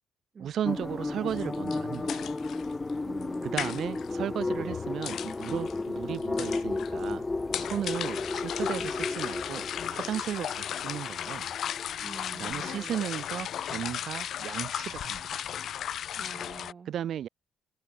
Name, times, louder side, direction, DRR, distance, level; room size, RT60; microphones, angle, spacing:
voice 1, 0.4-2.3 3.4-7.3 7.6-11.5 12.4-15.5 16.9-17.3, right 10 dB, 70° right, 0.3 m, -35 dB
sound 1, 0.6-13.0, left 3 dB, 20° left, 0.7 m, -34 dB
sound 2, 1.3-16.7, left 10 dB, 65° left, 0.9 m, -36 dB
voice 2, 3.0-3.7 8.8-8.9 12.0-13.1 16.2-16.9, right 5 dB, 40° right, 1.1 m, -46 dB
cardioid pair, 90°, 0 cm